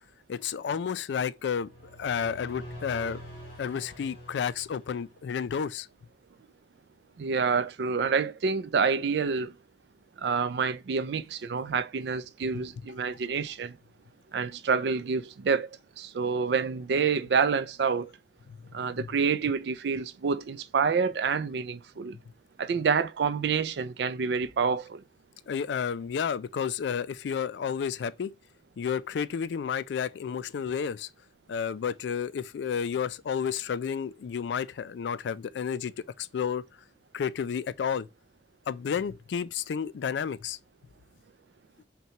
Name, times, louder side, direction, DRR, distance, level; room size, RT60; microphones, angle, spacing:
voice 1, 0.3-1.7 2.0-3.2 3.6-5.9 12.5-12.6 19.0-19.1 25.5-28.3 28.8-31.1 31.5-35.9 36.2-36.6 37.1-38.1 38.7-40.6, left 7 dB, 75° left, 0.3 m, -31 dB
sound 1, 1.6-5.4, equal, 35° left, 2.7 m, -46 dB
voice 2, 7.2-9.5 10.2-13.7 14.3-15.7 16.0-18.1 18.7-22.2 22.6-25.0, right 5 dB, 65° right, 0.4 m, -28 dB
5.5 x 2.3 x 2.9 m
head